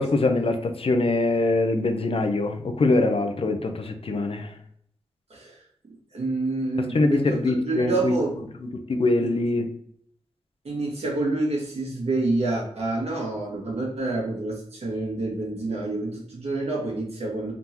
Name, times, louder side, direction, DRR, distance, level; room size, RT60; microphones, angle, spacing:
voice 1, 0.0-4.6 6.8-8.1 8.6-9.7, left 2 dB, 60° left, 6 dB, 0.7 m, -23 dB
voice 2, 6.1-7.4 7.6-8.4 10.6-17.5, right 2 dB, 75° right, -3 dB, 1.6 m, -28 dB
3.8 x 3.6 x 2.9 m, 0.67 s
cardioid pair, 50°, 11 cm